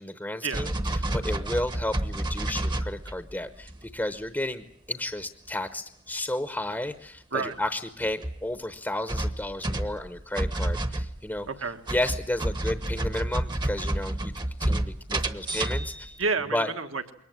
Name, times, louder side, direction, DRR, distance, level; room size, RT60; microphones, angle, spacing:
voice 1, 0.0-11.5 11.9-16.1 16.5-16.7, left 1 dB, 10° left, 10 dB, 0.9 m, -32 dB
sound 1, 0.5-3.3 3.6-3.9 7.5-7.6 8.0-8.4 9.1-11.5 11.9-16.2, right 1 dB, 20° right, 1.1 m, -30 dB
voice 2, 11.5-11.8 16.2-17.1, right 4 dB, 70° right, 8 dB, 1.7 m, -30 dB
22.5 x 18.5 x 9.3 m, 0.65 s
head